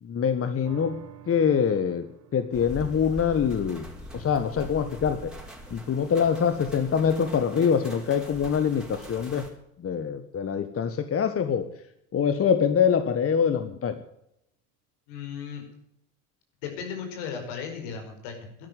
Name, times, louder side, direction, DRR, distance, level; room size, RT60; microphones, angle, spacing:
voice 1, 0.0-0.9 1.3-2.1 2.3-3.9 4.1-5.3 5.7-9.4 9.8-11.7 12.1-14.0, left 7 dB, 35° left, 9 dB, 1.5 m, -24 dB
sound 1, 0.6-7.3 7.8-7.9, right 9 dB, 65° right, 3.9 m, -53 dB
sound 2, 2.5-9.5, left 1 dB, ahead, 4.9 m, -42 dB
voice 2, 15.1-15.6 16.6-18.7, left 6 dB, 70° left, 4 dB, 5.4 m, -36 dB
12.0 x 12.0 x 9.5 m, 0.76 s
hypercardioid pair, 70°, 40 cm